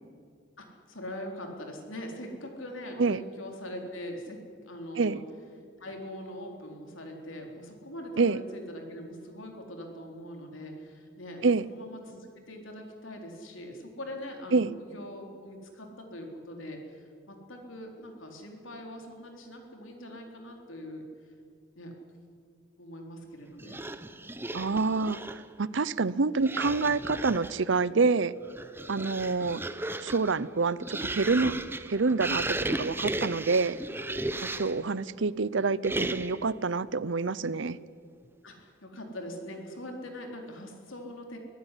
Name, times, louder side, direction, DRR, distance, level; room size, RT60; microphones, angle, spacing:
voice 1, 0.6-5.2 5.8-21.1 21.8-22.0 22.8-23.8 38.4-41.4, left 1 dB, 80° left, 3 dB, 4.0 m, -42 dB
sound 1, 23.6-25.5 26.4-27.6 28.4-34.9 35.8-36.5, right 2 dB, 10° right, 0.8 m, -35 dB
voice 2, 24.5-28.3 28.9-29.6 30.0-31.6 31.9-32.5 32.8-33.8 34.6-37.8, right 4 dB, 65° right, 19 dB, 0.7 m, -27 dB
23.0 x 16.5 x 10.0 m, 2.2 s
head